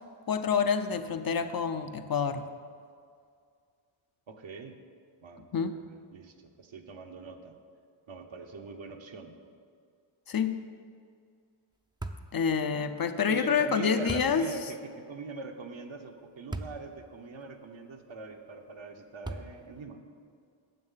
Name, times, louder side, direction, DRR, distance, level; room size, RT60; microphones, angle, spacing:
voice 1, 0.3-2.4 5.5-5.8 10.3-10.6 12.3-14.5, left 6 dB, 45° left, 9 dB, 0.6 m, -28 dB
voice 2, 4.3-4.7 5.2-5.8 6.1-7.6 8.1-9.4 13.3-14.8 15.1-20.0, right 4 dB, 65° right, 5 dB, 1.1 m, -42 dB
sound 1, 12.0-12.3 14.1-14.4 16.5-16.8 17.4-17.5 19.2-19.7, right 2 dB, 10° right, 0.5 m, -37 dB
9.5 x 7.2 x 5.6 m, 2.2 s
wide cardioid pair, 80°, 49 cm